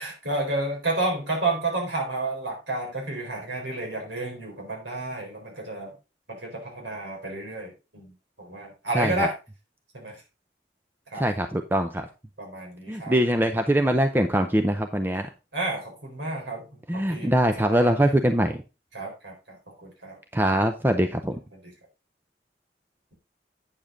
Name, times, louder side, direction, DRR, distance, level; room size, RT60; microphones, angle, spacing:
voice 1, 0.0-5.9 6.3-8.1 8.4-9.3 9.9-10.2 11.1-11.2 12.4-13.1 15.5-16.7 16.9-17.3 17.7-18.1 18.9-19.6 19.8-20.2 20.5-20.6 21.5-21.7, right 2 dB, 85° right, 1 dB, 4.2 m, -31 dB
voice 2, 8.9-9.3 11.1-12.1 12.9-15.3 16.9-18.6 20.3-21.4, right 1 dB, 10° right, 7 dB, 0.5 m, -23 dB
8.7 x 7.0 x 3.8 m, 0.29 s
head